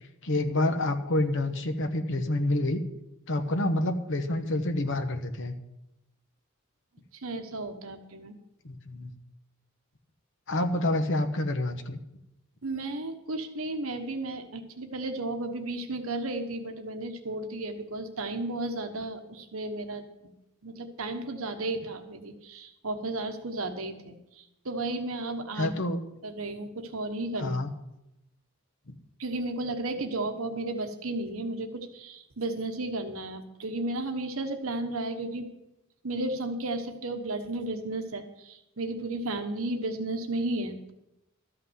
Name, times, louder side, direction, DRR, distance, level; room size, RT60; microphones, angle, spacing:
voice 1, 0.2-2.8 3.3-5.5 8.6-9.1 10.5-12.0 25.6-26.0 27.4-27.7, left 1 dB, 60° left, 7 dB, 1.1 m, -28 dB
voice 2, 7.1-8.4 12.6-20.1 20.6-25.7 26.2-27.6 29.2-35.5 36.0-40.9, right 2 dB, 75° right, 6 dB, 1.2 m, -33 dB
13.0 x 5.8 x 7.9 m, 0.89 s
head